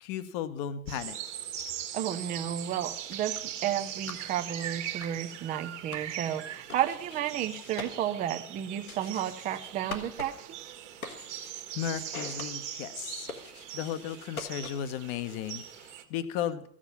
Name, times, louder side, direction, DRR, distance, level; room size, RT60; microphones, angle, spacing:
voice 1, 0.0-1.2 11.7-13.3 13.7-16.6, left 9 dB, 40° left, 14 dB, 1.0 m, -35 dB
sound 1, 0.9-16.0, right 11 dB, 55° right, 1.7 m, -41 dB
voice 2, 1.9-10.6, right 10 dB, 20° right, 6 dB, 0.5 m, -32 dB
sound 2, 2.9-15.0, left 3 dB, 80° left, 1.5 m, -46 dB
14.5 x 7.5 x 7.1 m, 0.68 s
figure-of-eight pair, 85°, 42 cm